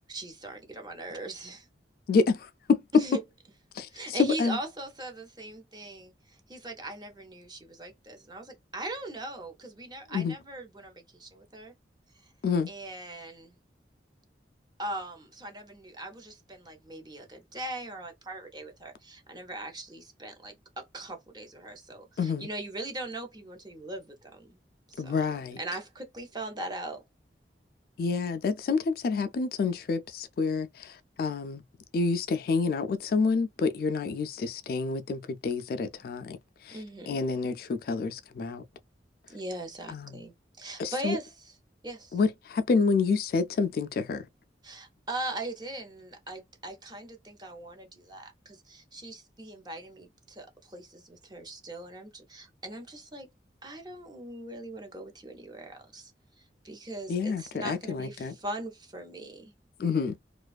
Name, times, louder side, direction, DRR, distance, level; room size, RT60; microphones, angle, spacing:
voice 1, 0.1-1.7 2.9-3.2 3.9-11.7 12.7-13.6 14.8-24.6 24.9-25.2 25.6-27.0 36.7-37.2 39.3-41.5 41.8-42.2 44.6-53.3 53.6-56.1 56.4-59.5, right 2 dB, 25° right, 0.7 m, -40 dB
voice 2, 2.1-2.8 3.8-4.6 10.1-10.4 12.4-12.7 22.2-22.5 25.0-25.6 28.0-31.6 31.9-36.4 36.6-36.8 37.1-38.6 39.9-40.2 40.8-41.2 42.1-44.2 57.1-58.3 59.8-60.2, left 4 dB, 55° left, 0.3 m, -28 dB
2.5 x 2.3 x 2.3 m
head